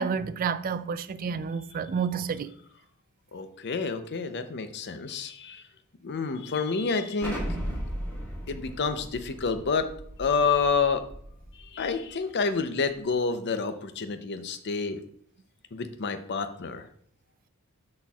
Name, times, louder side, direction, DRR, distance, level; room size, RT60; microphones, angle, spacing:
voice 1, 0.0-2.5, right 6 dB, 40° right, 0.3 m, -30 dB
voice 2, 3.3-5.6 6.0-7.4 8.5-9.9 10.2-11.1 11.5-15.0 15.7-16.9, left 5 dB, 50° left, 0.6 m, -28 dB
Explosion, 7.2-11.9, equal, 10° left, 1.5 m, -37 dB
11.5 x 4.2 x 2.3 m
head